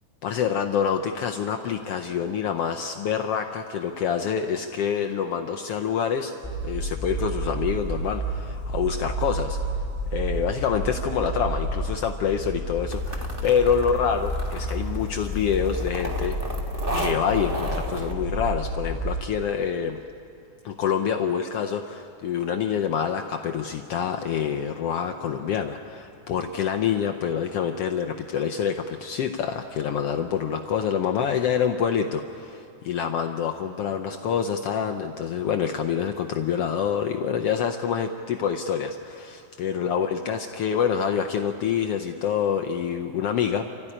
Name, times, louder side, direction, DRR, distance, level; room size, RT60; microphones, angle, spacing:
voice 1, 0.2-6.3 6.6-9.6 10.1-16.4 17.0-20.0 20.6-43.7, left 7 dB, 85° left, 5 dB, 1.3 m, -26 dB
sound 1, 6.4-19.2, right 1 dB, 15° left, 2.7 m, -30 dB
sound 2, 12.9-18.1, right 1 dB, 25° right, 1.3 m, -34 dB
28.5 x 14.0 x 10.0 m, 2.6 s
omnidirectional pair, 3.8 m